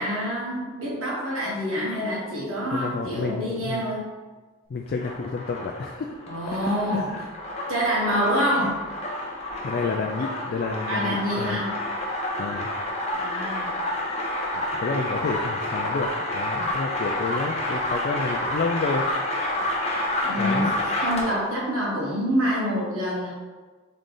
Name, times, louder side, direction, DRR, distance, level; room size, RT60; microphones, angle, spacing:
voice 1, 0.0-4.1 6.3-7.2 7.7-8.9 10.9-11.8 13.1-13.8 20.2-23.3, equal, 80° right, -6 dB, 1.4 m, -26 dB
voice 2, 2.7-3.8 4.7-6.1 6.5-6.6 6.9-7.3 9.6-11.6 12.4-12.7 14.5-19.0 20.4-20.8, left 4 dB, 45° left, 1 dB, 0.3 m, -30 dB
sound 1, 4.8-21.5, left 1 dB, 30° left, 0.7 m, -29 dB
3.8 x 3.2 x 3.8 m, 1.3 s
head